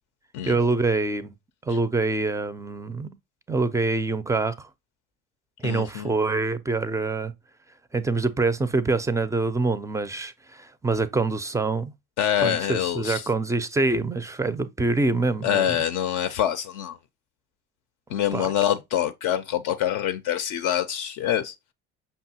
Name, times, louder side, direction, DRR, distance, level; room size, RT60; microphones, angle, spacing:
voice 1, 0.5-1.3 1.6-3.1 3.5-4.7 5.6-7.3 7.9-11.9 12.4-15.8 18.3-18.5, right 3 dB, 10° right, 0.3 m, -25 dB
voice 2, 5.6-6.1 12.2-13.3 15.4-17.0 18.1-21.5, left 10 dB, 60° left, 0.5 m, -25 dB
5.4 x 2.2 x 2.7 m
hypercardioid pair, 65°, 35 cm